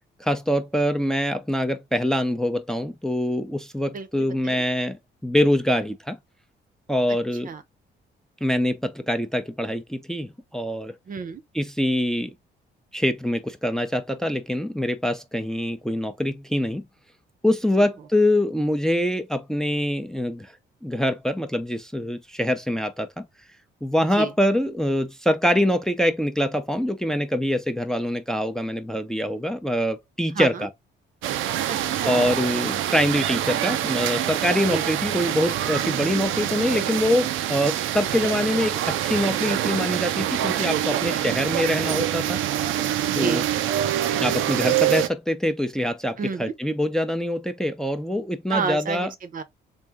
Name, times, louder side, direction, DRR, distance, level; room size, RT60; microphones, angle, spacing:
voice 1, 0.2-6.2 6.9-7.5 8.4-10.9 11.5-12.3 12.9-16.9 17.4-20.5 20.8-23.3 23.8-30.7 32.0-42.4 43.2-43.4 44.2-49.1, left 1 dB, 5° left, 0.5 m, -24 dB
voice 2, 3.9-4.6 7.4-7.6 11.1-11.4 24.1-24.3 30.3-30.7 31.7-32.3 34.7-34.8 43.1-43.5 46.2-46.5 48.5-49.4, right 5 dB, 45° right, 0.7 m, -30 dB
sound 1, 31.2-45.1, right 12 dB, 90° right, 0.5 m, -25 dB
3.5 x 2.6 x 3.4 m
cardioid pair, 90°, 20 cm